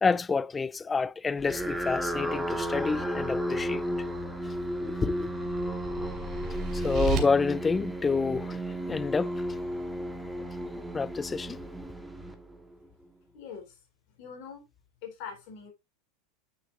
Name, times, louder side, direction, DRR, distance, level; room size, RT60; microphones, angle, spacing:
voice 1, 0.0-3.8 4.8-5.3 6.7-8.6 8.9-9.3 10.4-10.5 10.9-11.6, left 4 dB, 20° left, 0.4 m, -28 dB
sound 1, 1.4-12.9, equal, 5° right, 1.8 m, -34 dB
sound 2, 4.4-7.2, right 6 dB, 45° right, 2.7 m, -34 dB
voice 2, 13.3-14.7 15.0-15.7, left 6 dB, 60° left, 4.3 m, -43 dB
9.9 x 6.9 x 2.7 m
hypercardioid pair, 90°, 0 cm